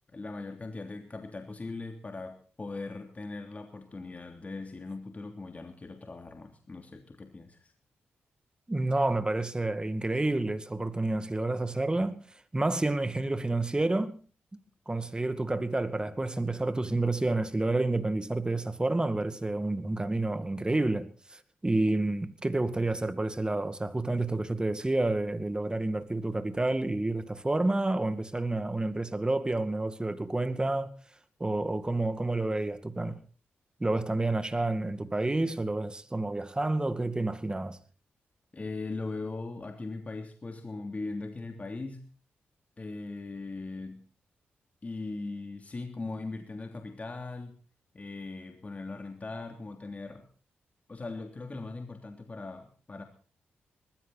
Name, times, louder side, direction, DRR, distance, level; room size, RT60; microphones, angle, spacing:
voice 1, 0.1-7.7 38.5-42.0 42.8-44.0 44.8-47.5 47.9-50.3 50.9-53.0, left 3 dB, 35° left, 3.1 m, -39 dB
voice 2, 8.7-12.2 12.5-14.2 14.9-30.9 31.4-33.2 33.8-37.8, right 2 dB, 20° right, 2.2 m, -29 dB
20.0 x 15.5 x 4.2 m
cardioid pair, 60°, 4 cm